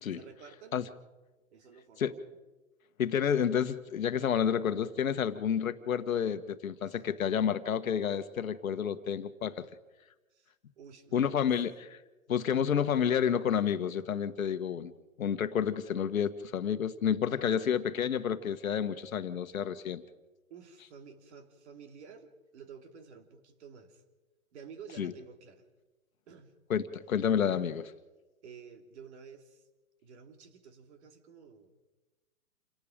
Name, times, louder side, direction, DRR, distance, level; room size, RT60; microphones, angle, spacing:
voice 1, 0.1-0.8 1.5-2.3 6.8-7.0 10.3-11.5 17.1-17.8 20.5-24.0 24.5-25.7 26.3-26.5 28.4-29.7 30.0-31.8, right 6 dB, 50° right, 6 dB, 3.1 m, -51 dB
voice 2, 3.0-9.7 11.1-12.0 12.3-14.9 15.2-20.0 25.0-25.1 26.7-27.9, left 8 dB, 70° left, 11 dB, 1.5 m, -30 dB
28.5 x 18.5 x 5.2 m, 1.1 s
hypercardioid pair, 145°, 42 cm